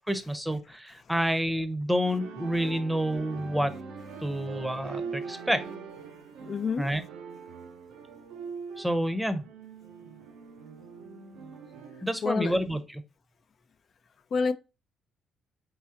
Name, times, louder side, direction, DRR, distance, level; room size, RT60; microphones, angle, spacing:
voice 1, 0.1-3.7 4.2-5.6 6.8-7.0 8.8-9.4 12.0-13.0, equal, 5° right, 0.7 m, -28 dB
sound 1, 2.1-12.1, right 5 dB, 90° right, 0.6 m, -42 dB
voice 2, 6.4-6.9 12.2-12.6 14.3-14.5, left 5 dB, 50° left, 0.4 m, -28 dB
4.0 x 3.7 x 2.8 m
cardioid pair, 90°, 0 cm